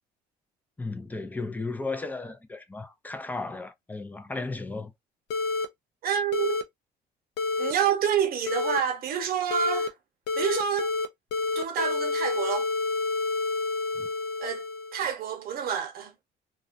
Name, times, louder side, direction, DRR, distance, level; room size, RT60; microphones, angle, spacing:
voice 1, 0.8-4.9 14.0-14.1, left 3 dB, 10° left, 0.4 m, -35 dB
sound 1, 5.3-5.7 6.3-6.6 7.4-7.7 8.5-8.8 9.5-9.9 10.3-11.1 11.3-15.0, left 3 dB, 90° left, 0.5 m, -29 dB
voice 2, 6.0-6.6 7.6-9.9 10.4-10.9 11.5-12.7 14.4-14.6 14.9-16.1, right 8 dB, 60° right, 0.8 m, -28 dB
2.3 x 2.2 x 2.5 m
cardioid pair, 110°, 17 cm